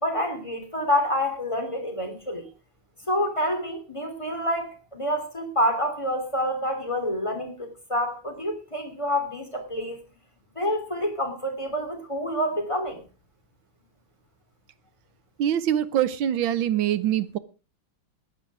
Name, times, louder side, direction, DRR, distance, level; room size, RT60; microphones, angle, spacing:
voice 1, 0.0-2.5 3.1-10.0 10.5-13.0, equal, 15° left, 3.1 m, -27 dB
voice 2, 15.4-17.4, right 11 dB, 70° right, 1.6 m, -24 dB
15.0 x 11.0 x 4.8 m
omnidirectional pair, 2.3 m